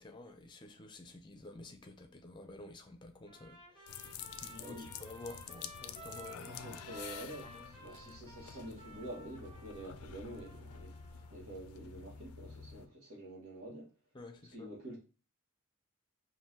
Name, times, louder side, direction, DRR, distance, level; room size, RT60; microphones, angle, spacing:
voice 1, 0.0-4.1 4.4-6.8 7.4-7.7 14.1-14.7, left 2 dB, 20° left, 0.5 m, -51 dB
Trumpet, 3.3-11.4, right 2 dB, 25° right, 1.3 m, -54 dB
sound 1, 3.9-12.9, left 7 dB, 75° left, 0.4 m, -49 dB
voice 2, 4.5-4.9 6.4-11.0 11.3-13.9 14.5-15.0, right 1 dB, 85° right, 1.5 m, -47 dB
5.5 x 2.7 x 2.7 m
head